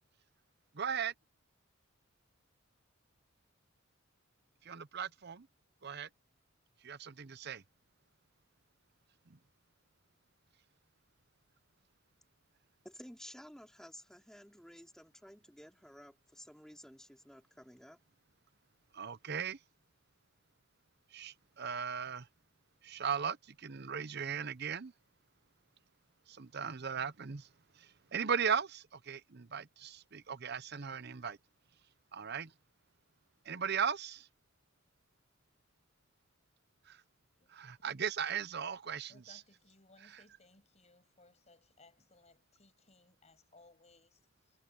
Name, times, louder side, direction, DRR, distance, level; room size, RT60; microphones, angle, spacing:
voice 1, 0.7-1.1 4.6-5.5 5.8-6.1 6.8-7.6 9.3-9.4 18.9-19.6 21.1-22.3 22.8-24.9 26.3-27.5 27.8-31.4 32.1-32.5 33.5-34.3 36.9-37.0 37.5-39.4 40.0-40.2, right 7 dB, 50° right, 0.7 m, -37 dB
voice 2, 12.8-18.0, equal, 5° left, 3.4 m, -54 dB
voice 3, 39.1-44.2, left 3 dB, 30° left, 6.9 m, -64 dB
head